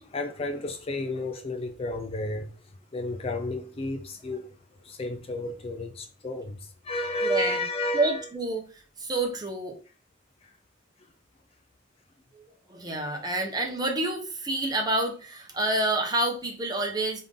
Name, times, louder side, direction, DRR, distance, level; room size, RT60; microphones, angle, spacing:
voice 1, 0.0-8.3 10.4-10.6 11.0-11.1 12.9-13.0, left 2 dB, 30° left, 0.5 m, -32 dB
voice 2, 7.2-7.6 7.9-8.6 9.0-9.8 12.3-12.4 12.7-17.2, right 2 dB, 20° right, 1.0 m, -28 dB
3.7 x 3.6 x 3.6 m
head